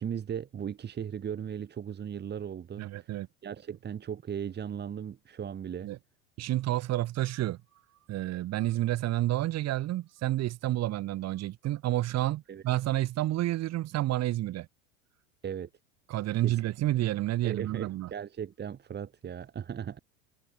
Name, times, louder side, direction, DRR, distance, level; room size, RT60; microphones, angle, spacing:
voice 1, 0.0-5.9 12.5-12.6 15.4-15.7 16.4-16.6 17.4-20.0, right 8 dB, 30° right, 2.9 m, -37 dB
voice 2, 2.8-3.3 5.8-6.0 6.4-7.6 8.1-14.7 16.1-18.1, right 15 dB, 45° right, 5.6 m, -30 dB
hypercardioid pair, 100°, 35 cm